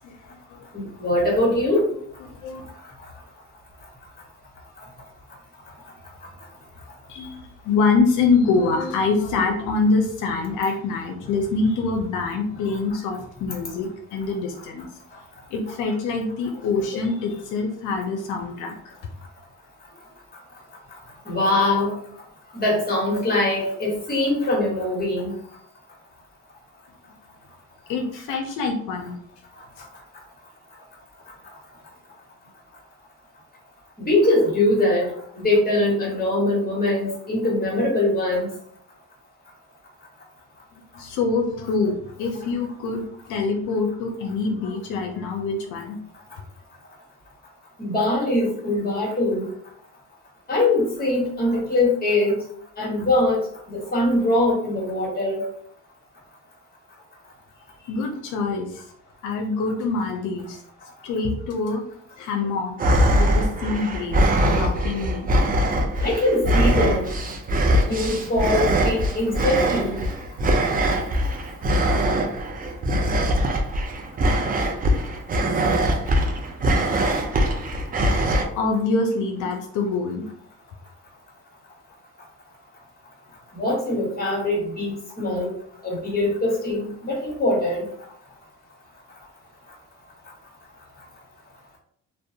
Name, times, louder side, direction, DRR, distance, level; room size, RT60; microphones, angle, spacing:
voice 1, 0.0-0.9 2.2-2.6 7.1-14.9 15.5-19.1 27.9-29.1 29.8-29.9 40.7-46.0 57.8-58.8 59.2-60.6 61.0-61.8 62.2-62.8 63.1-65.3 78.6-80.2, left 3 dB, 90° left, 2 dB, 0.5 m, -25 dB
voice 2, 1.0-1.9 21.3-22.0 22.5-25.3 34.0-38.5 47.8-49.5 50.5-52.4 52.8-53.4 53.7-55.4 66.0-67.1 67.9-70.0 83.5-85.5 85.8-87.8, left 1 dB, 30° left, -3 dB, 1.2 m, -22 dB
sound 1, 62.8-78.4, right 1 dB, 30° right, 0.4 m, -22 dB
2.5 x 2.0 x 2.7 m, 0.65 s
cardioid pair, 90°, 30 cm